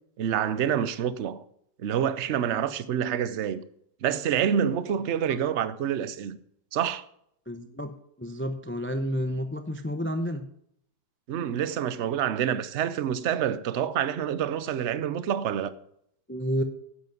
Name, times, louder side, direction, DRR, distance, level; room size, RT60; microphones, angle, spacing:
voice 1, 0.2-1.4 1.8-3.6 4.0-6.4 6.7-7.0 11.3-15.7, right 9 dB, 55° right, 0.8 m, -27 dB
voice 2, 7.5-10.4 16.3-16.6, equal, 20° left, 0.3 m, -30 dB
10.0 x 8.3 x 5.3 m
omnidirectional pair, 1.8 m